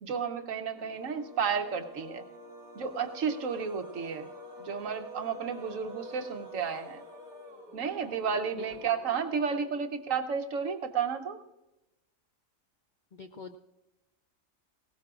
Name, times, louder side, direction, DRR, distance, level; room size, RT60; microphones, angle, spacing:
voice 1, 0.0-2.2 2.7-4.3 4.6-7.0 7.7-11.4, right 6 dB, 75° right, 6 dB, 1.3 m, -32 dB
sound 1, 0.7-10.1, equal, 15° right, 3.0 m, -48 dB
voice 2, 13.1-13.6, left 5 dB, 60° left, 7 dB, 0.5 m, -44 dB
20.0 x 17.5 x 2.5 m, 0.98 s
omnidirectional pair, 1.4 m